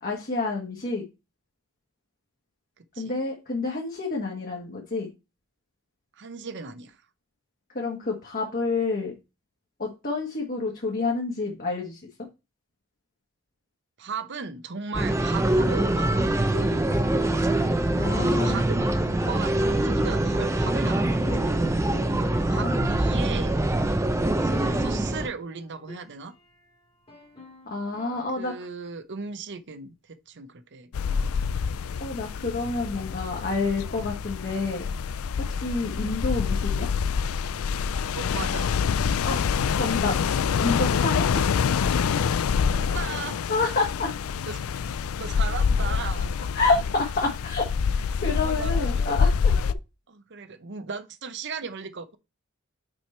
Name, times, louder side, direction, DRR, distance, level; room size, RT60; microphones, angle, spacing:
voice 1, 0.0-1.1 3.0-5.1 7.7-9.1 9.8-12.0 18.0-18.5 22.5-22.9 27.6-28.5 32.0-34.9 35.5-36.9 39.2-39.4 39.7-40.2 40.6-41.5 43.5-44.1 46.5-47.6 47.9-49.7, left 3 dB, 45° left, 1.5 m, -28 dB
voice 2, 2.8-3.1 6.1-7.0 14.0-16.8 18.0-21.7 22.4-23.5 24.4-26.3 28.4-31.3 36.2-36.4 38.1-38.7 42.7-43.4 44.5-44.8 45.2-46.3 48.4-49.3 50.1-52.2, right 5 dB, 55° right, 0.7 m, -37 dB
sound 1, 14.9-25.3, right 1 dB, 15° right, 0.6 m, -24 dB
sound 2, 17.6-19.4 19.7-23.0 23.3-23.4 23.5-24.1 24.7-26.7 27.1-28.7, left 3 dB, 25° left, 1.8 m, -46 dB
sound 3, 30.9-49.7, left 6 dB, 80° left, 0.4 m, -26 dB
6.1 x 4.9 x 4.3 m
head